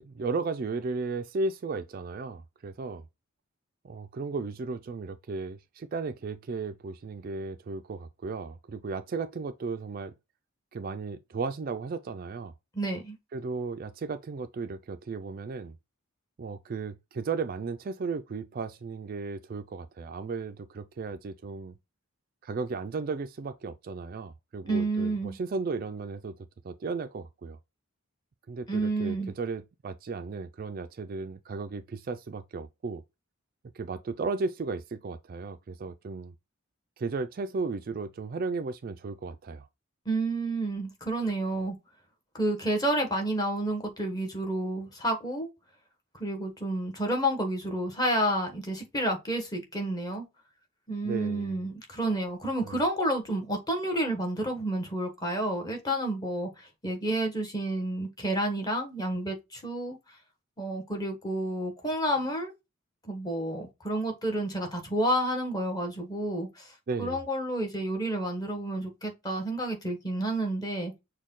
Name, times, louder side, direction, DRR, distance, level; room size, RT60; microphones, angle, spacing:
voice 1, 0.0-3.1 3.8-10.1 10.7-12.5 13.3-15.8 16.4-21.8 22.4-26.4 26.6-27.6 28.5-33.0 33.7-36.3 37.0-39.7 51.0-51.6 52.4-52.8 66.9-67.2, right 4 dB, 45° right, 0.3 m, -35 dB
voice 2, 12.7-13.2 24.7-25.3 28.7-29.3 40.0-41.8 42.3-45.5 46.2-50.2 50.9-60.0 60.6-62.5 63.0-66.7 67.0-70.9, right 1 dB, 20° left, 1.1 m, -30 dB
6.3 x 2.2 x 3.6 m
head